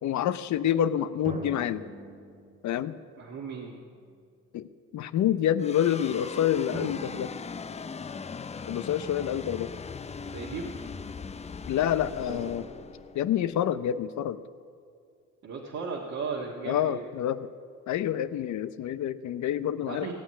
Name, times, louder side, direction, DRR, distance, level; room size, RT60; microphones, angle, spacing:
voice 1, 0.0-1.8 2.6-3.0 4.5-7.3 8.7-9.7 11.7-12.7 13.1-14.4 16.7-17.5 17.9-20.1, left 10 dB, 70° left, 13 dB, 0.7 m, -27 dB
sound 1, 1.3-3.0 3.9-4.0 6.7-8.5 12.3-13.6, right 2 dB, 25° right, 1.9 m, -42 dB
voice 2, 3.2-3.8 10.3-10.7 15.4-17.0 19.8-20.1, right 5 dB, 60° right, -2 dB, 1.7 m, -36 dB
sound 2, 5.6-14.1, left 5 dB, 20° left, 0.5 m, -40 dB
17.5 x 7.3 x 8.8 m, 2.3 s
cardioid pair, 90°, 30 cm